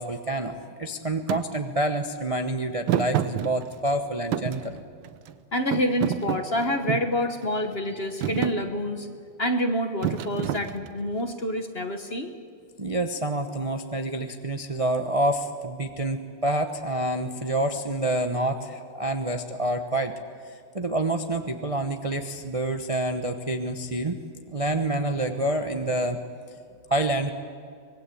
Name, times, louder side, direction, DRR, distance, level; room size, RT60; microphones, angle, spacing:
voice 1, 0.0-4.8 12.8-20.2 20.4-24.2 24.5-26.2 26.9-27.3, right 1 dB, 25° right, 6 dB, 0.7 m, -27 dB
Thump thud, 1.3-1.4 2.9-4.0 4.3-5.3 5.7-7.2 7.7-8.0 8.2-8.6 10.0-11.1, right 10 dB, 80° right, 1.6 m, -28 dB
voice 2, 5.5-9.1 9.4-12.3, equal, 35° left, 7 dB, 1.2 m, -27 dB
25.0 x 21.0 x 8.5 m, 2.3 s
omnidirectional pair, 2.2 m